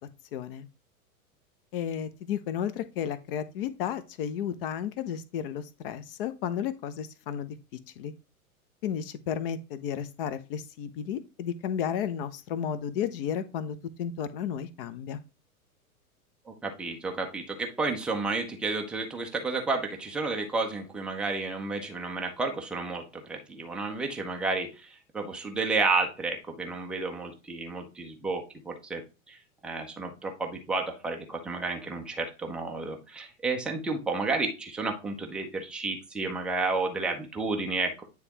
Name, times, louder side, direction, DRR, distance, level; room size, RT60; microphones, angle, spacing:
voice 1, 0.3-0.7 1.7-7.6 8.0-8.1 8.8-15.2, left 8 dB, 40° left, 0.7 m, -33 dB
voice 2, 16.5-29.0 29.3-38.0, right 3 dB, ahead, 0.4 m, -31 dB
9.4 x 3.5 x 2.9 m
figure-of-eight pair, 100°, 44 cm